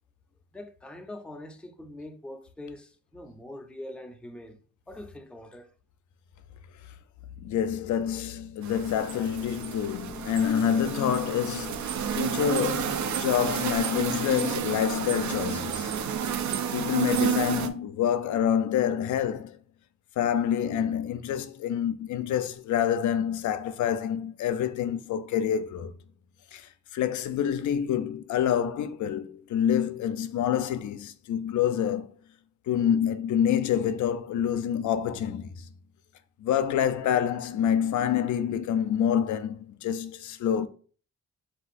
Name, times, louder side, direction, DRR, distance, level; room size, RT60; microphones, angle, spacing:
voice 1, 0.5-4.6 4.9-5.7, left 1 dB, 5° left, 0.5 m, -43 dB
voice 2, 7.4-16.0 16.7-19.6 20.2-25.9 26.5-32.1 32.7-35.7 36.4-40.7, left 9 dB, 75° left, 0.5 m, -27 dB
sound 1, 8.6-17.7, right 8 dB, 70° right, 0.5 m, -30 dB
3.8 x 2.7 x 4.1 m
cardioid pair, 110°, 30 cm